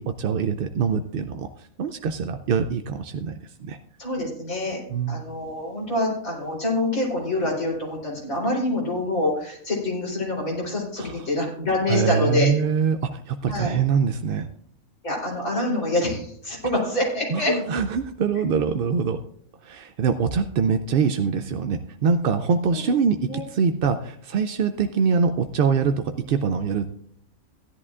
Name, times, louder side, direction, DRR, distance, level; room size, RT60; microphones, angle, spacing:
voice 1, 0.0-1.5 1.8-3.3 3.6-3.8 4.9-5.2 11.0-11.2 11.9-14.5 17.3-19.2 19.6-27.0, right 6 dB, 65° right, 7 dB, 0.5 m, -24 dB
voice 2, 4.0-4.8 5.1-12.5 13.5-13.7 15.0-17.5 23.3-23.4, left 2 dB, 75° left, -3 dB, 4.0 m, -26 dB
16.0 x 10.5 x 2.4 m, 0.66 s
omnidirectional pair, 1.5 m